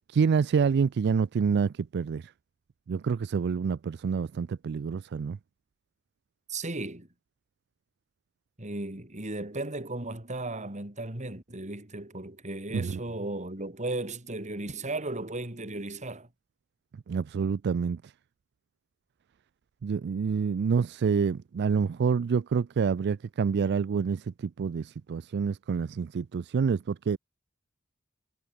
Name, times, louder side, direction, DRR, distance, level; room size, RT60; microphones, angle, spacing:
voice 1, 0.1-2.3 2.9-5.4 12.7-13.0 17.1-18.1 19.8-27.2, right 6 dB, 55° right, 0.4 m, -27 dB
voice 2, 6.5-7.1 8.6-16.3, right 2 dB, 35° right, 3.7 m, -35 dB
head